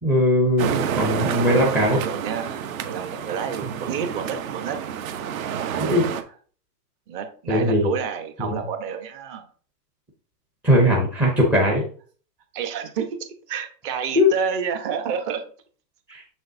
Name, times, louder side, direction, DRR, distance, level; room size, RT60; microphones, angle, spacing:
voice 1, 0.0-2.0 5.8-6.0 7.5-7.9 8.4-8.6 10.6-11.8 14.1-14.3 16.1-16.2, equal, 5° right, -2 dB, 0.5 m, -19 dB
sound 1, 0.6-6.2, right 8 dB, 55° right, 1.0 m, -29 dB
voice 2, 0.8-1.2 1.8-4.8 7.1-9.5 12.5-15.4, right 7 dB, 35° right, 6 dB, 1.1 m, -30 dB
7.0 x 6.4 x 2.7 m, 0.44 s
hypercardioid pair, 150°, 49 cm